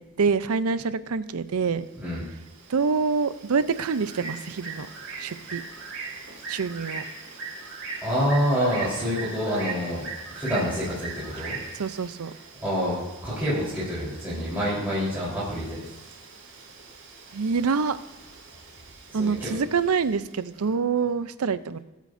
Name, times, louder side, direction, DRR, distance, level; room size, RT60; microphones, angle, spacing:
voice 1, 0.0-1.9 2.7-4.9 5.2-5.6 6.5-7.1 11.4-11.5 11.7-12.3 17.3-18.0 19.1-21.8, right 5 dB, 75° right, 14 dB, 0.6 m, -26 dB
Bird, 1.7-20.4, right 4 dB, 60° right, 2.4 m, -41 dB
voice 2, 8.0-11.6 12.6-15.8 19.2-19.6, equal, 10° right, -10 dB, 3.8 m, -27 dB
22.0 x 8.3 x 2.6 m, 1.0 s
head